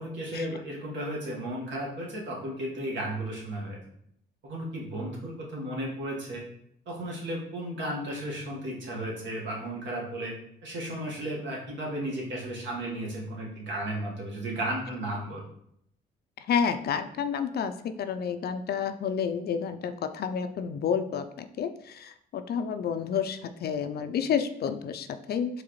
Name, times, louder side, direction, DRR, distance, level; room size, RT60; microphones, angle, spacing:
voice 1, 0.0-3.8 4.4-6.4 6.8-10.3 10.6-15.4, right 1 dB, 65° right, -3 dB, 1.5 m, -34 dB
voice 2, 16.5-25.6, left 7 dB, 55° left, 9 dB, 0.4 m, -30 dB
4.8 x 3.3 x 3.0 m, 0.72 s
cardioid pair, 90°, 20 cm